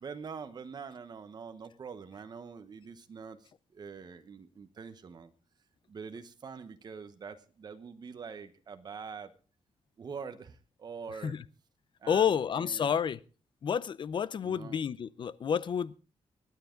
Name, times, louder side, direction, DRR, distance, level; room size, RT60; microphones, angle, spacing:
voice 1, 0.0-5.3 5.9-9.3 10.0-11.4 12.0-13.0 14.4-14.8, right 5 dB, 40° right, 1.1 m, -45 dB
voice 2, 12.1-13.2 13.6-16.0, left 7 dB, 50° left, 0.6 m, -30 dB
25.0 x 9.5 x 3.8 m
wide cardioid pair, 145°, 11 cm